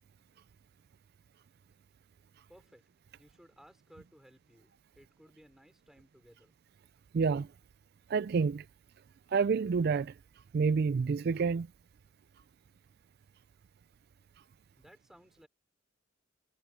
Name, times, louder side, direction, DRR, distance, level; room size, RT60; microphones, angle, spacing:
voice 1, 2.5-2.8 3.2-6.6 14.7-15.5, equal, ahead, 4.5 m, -59 dB
voice 2, 7.1-7.5 8.1-8.6 9.3-10.1 10.5-11.7, right 5 dB, 50° right, 0.3 m, -28 dB
head